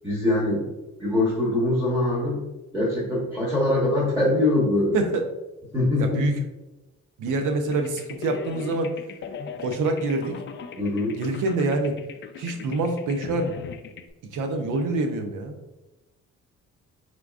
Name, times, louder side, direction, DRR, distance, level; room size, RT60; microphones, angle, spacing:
voice 1, 0.0-0.7 1.0-2.4 2.7-5.0 5.7-6.4 10.8-11.2, left 2 dB, 10° right, -6 dB, 1.2 m, -23 dB
voice 2, 4.9-5.2 6.0-6.3 7.2-9.0 9.6-10.4 11.2-12.0 12.4-13.5 14.3-15.6, right 3 dB, 80° right, 5 dB, 0.7 m, -26 dB
sound 1, 7.7-14.1, left 6 dB, 40° left, 0.4 m, -38 dB
4.4 x 3.7 x 2.4 m, 1.0 s
cardioid pair, 90°, 30 cm